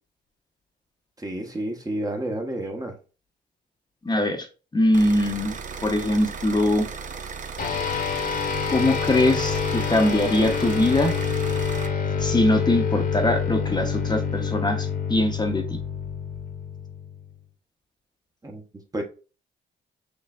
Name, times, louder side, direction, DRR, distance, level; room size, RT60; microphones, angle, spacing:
voice 1, 1.2-3.0 18.4-18.6 18.9-19.0, right 1 dB, 20° right, 3 dB, 1.0 m, -30 dB
voice 2, 4.0-4.5 4.7-5.6 5.8-6.9 8.7-11.1 12.2-15.8, left 1 dB, 20° left, 4 dB, 0.9 m, -22 dB
sound 1, 4.9-11.9, right 5 dB, 40° right, 0.6 m, -36 dB
sound 2, 7.6-17.3, left 6 dB, 45° left, 1.2 m, -27 dB
6.5 x 3.2 x 2.4 m, 0.34 s
cardioid pair, 90°, 20 cm